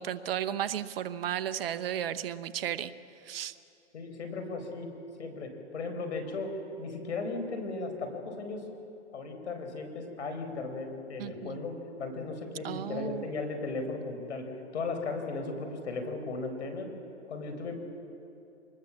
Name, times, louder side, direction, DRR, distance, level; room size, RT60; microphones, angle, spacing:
voice 1, 0.0-2.9 3.2-3.5 11.2-11.6 12.6-13.3, right 10 dB, 55° right, 12 dB, 0.9 m, -34 dB
voice 2, 3.9-4.9 5.2-6.5 6.8-8.6 9.1-16.9 17.3-17.7, left 3 dB, 70° left, 6 dB, 4.6 m, -36 dB
25.0 x 20.5 x 7.3 m, 2.8 s
hypercardioid pair, 135°, 36 cm